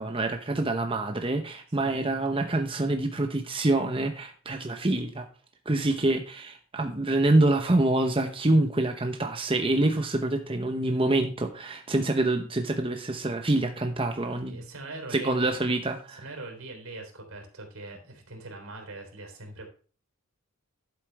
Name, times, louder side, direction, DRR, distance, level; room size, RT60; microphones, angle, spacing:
voice 1, 0.0-5.3 5.7-14.6 15.1-16.2, right 2 dB, 25° right, 5 dB, 0.9 m, -26 dB
voice 2, 1.8-2.2 14.5-15.6 16.2-19.7, right 2 dB, 80° right, 3 dB, 3.8 m, -42 dB
11.5 x 8.4 x 3.4 m, 0.39 s
head